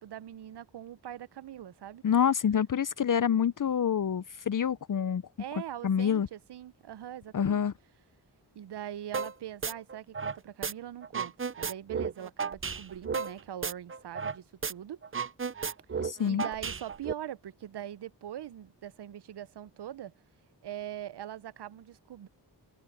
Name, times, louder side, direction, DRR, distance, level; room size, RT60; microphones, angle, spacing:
voice 1, 0.0-2.0 5.4-7.6 8.5-15.0 16.0-20.1 20.6-22.3, right 11 dB, 70° right, 0.6 m, -42 dB
voice 2, 2.0-5.2 5.8-6.3 7.3-7.7 16.0-16.5, left 8 dB, 50° left, 0.6 m, -27 dB
sound 1, 9.1-9.3 9.6-10.7 11.0-14.4 14.6-14.7 15.0-17.1, right 5 dB, 30° right, 0.6 m, -33 dB
cardioid pair, 55°, 42 cm